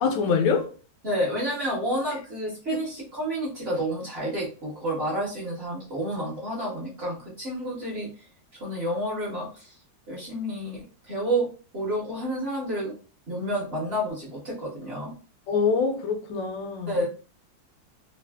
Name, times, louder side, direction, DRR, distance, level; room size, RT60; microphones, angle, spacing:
voice 1, 0.0-0.7 2.7-2.8 15.5-17.0, left 5 dB, 80° left, 1.2 m, -25 dB
voice 2, 1.0-8.1 8.6-9.7 10.1-11.5 11.7-12.9 13.3-15.1 16.9-17.1, right 1 dB, 45° right, 0.9 m, -30 dB
3.2 x 2.4 x 2.3 m
omnidirectional pair, 2.0 m